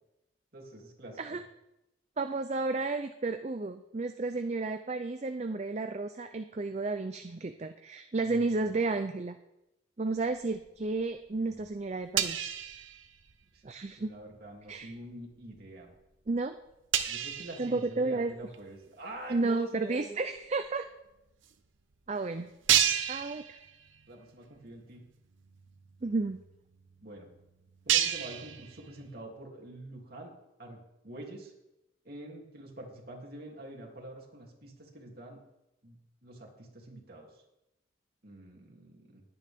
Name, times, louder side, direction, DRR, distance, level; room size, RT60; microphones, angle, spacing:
voice 1, 0.5-1.4 8.2-8.7 13.5-13.6 13.9-15.9 17.1-20.2 24.1-25.0 27.0-27.3 27.8-30.3 30.6-31.5 32.0-35.4 35.8-37.3 38.2-39.2, right 1 dB, 50° right, -1 dB, 2.9 m, -46 dB
voice 2, 2.2-9.4 10.0-12.5 13.6-14.1 14.7-14.9 16.3-16.5 17.6-18.3 19.3-20.9 22.1-22.5 23.1-23.4 26.0-26.4, right 3 dB, 35° right, 7 dB, 0.5 m, -32 dB
sound 1, 10.3-11.0 11.3-13.6 13.9-14.2 14.7-15.0 15.5-15.6 16.0-16.1 16.3-16.4 16.9-18.6 19.2-19.3 20.4-20.5 20.6-20.8 21.4-21.5 21.9-22.0 22.6-24.1 24.4-24.6 25.1-25.2 25.4-29.2, right 10 dB, 80° right, 0.9 m, -32 dB
20.5 x 9.3 x 3.6 m, 0.92 s
head